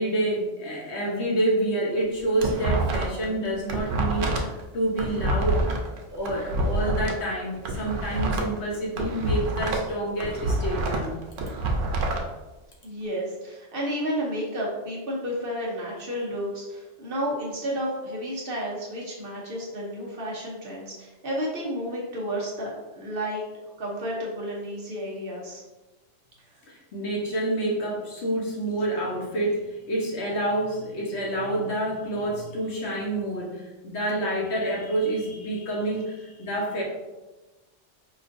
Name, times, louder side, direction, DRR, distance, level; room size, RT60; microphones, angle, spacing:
voice 1, 0.0-4.3 4.7-5.6 6.1-11.1 26.6-36.8, right 1 dB, 65° left, -3 dB, 1.1 m, -28 dB
sound 1, 2.0-3.3 3.5-7.1 7.5-9.9 10.2-12.2, right 2 dB, 90° right, 1.0 m, -27 dB
voice 2, 12.8-25.6, equal, 55° right, -4 dB, 1.0 m, -31 dB
5.1 x 2.4 x 2.5 m, 1.1 s
omnidirectional pair, 1.2 m